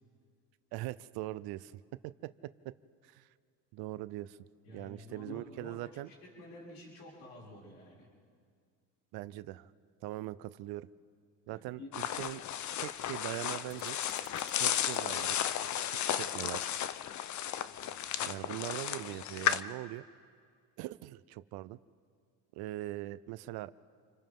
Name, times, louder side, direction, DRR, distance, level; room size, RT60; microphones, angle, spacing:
voice 1, 0.7-1.7 2.0-2.3 2.6-2.7 3.0-3.3 3.7-4.4 4.7-6.1 9.1-9.7 10.0-10.9 11.5-12.4 12.8-14.0 14.5-16.7 18.2-20.0 20.8-21.8 22.5-23.7, right 16 dB, 65° right, 16 dB, 0.7 m, -41 dB
voice 2, 4.6-8.1 11.5-11.9, left 2 dB, 75° left, -5 dB, 6.2 m, -50 dB
sound 1, 11.9-19.6, left 10 dB, 45° left, 0.8 m, -34 dB
sound 2, 13.7-15.0, right 4 dB, 15° right, 4.9 m, -56 dB
29.0 x 25.0 x 3.7 m, 2.1 s
supercardioid pair, 90°, 40 cm